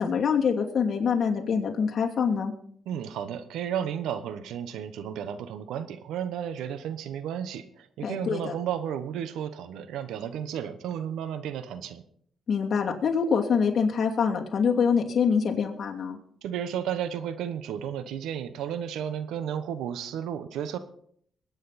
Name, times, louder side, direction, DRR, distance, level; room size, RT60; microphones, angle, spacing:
voice 1, 0.0-2.5 8.0-8.5 12.5-16.2, left 6 dB, 50° left, 0 dB, 2.7 m, -25 dB
voice 2, 2.9-12.0 16.4-20.8, right 9 dB, 85° right, 12 dB, 1.1 m, -33 dB
21.5 x 9.3 x 4.2 m, 0.64 s
cardioid pair, 90°, 0 cm